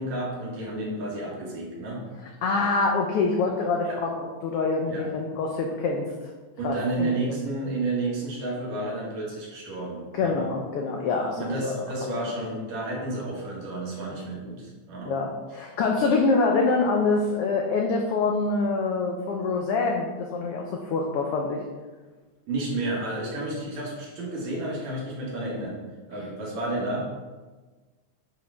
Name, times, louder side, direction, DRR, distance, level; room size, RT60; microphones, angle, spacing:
voice 1, 0.0-2.0 3.8-4.0 4.9-5.1 6.6-10.4 11.4-15.2 22.5-27.0, right 2 dB, 65° right, -4 dB, 3.0 m, -31 dB
voice 2, 2.4-6.1 6.6-7.1 10.1-11.4 11.6-11.7 12.0-12.1 15.0-21.6, left 3 dB, 85° left, 1 dB, 1.3 m, -25 dB
10.0 x 4.9 x 3.5 m, 1.3 s
omnidirectional pair, 3.6 m